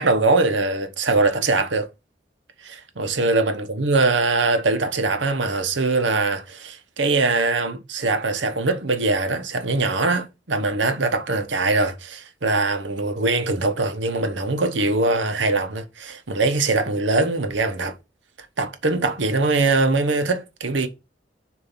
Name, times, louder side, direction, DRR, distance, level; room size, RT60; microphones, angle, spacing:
voice 1, 0.0-1.9 3.0-17.9 18.6-20.9, right 3 dB, 80° right, 1.0 m, -22 dB
6.8 x 2.7 x 5.6 m
head